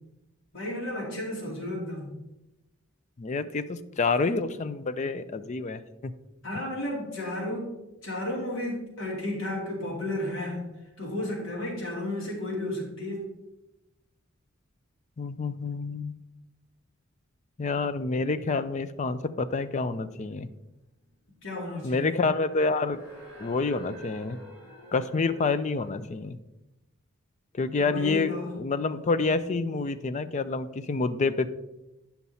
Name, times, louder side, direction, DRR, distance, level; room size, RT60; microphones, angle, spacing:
voice 1, 0.5-2.2 6.4-7.8 8.0-10.6 11.0-13.3 21.4-22.1 27.8-28.5, left 1 dB, 65° left, -2 dB, 2.6 m, -33 dB
voice 2, 3.2-6.1 15.2-16.1 17.6-20.5 21.8-23.0 23.4-24.4 24.9-26.4 27.5-28.3 28.6-31.5, left 4 dB, 35° left, 12 dB, 0.4 m, -28 dB
sound 1, 21.8-26.1, right 1 dB, 10° right, 3.1 m, -47 dB
9.2 x 5.8 x 4.1 m, 0.97 s
head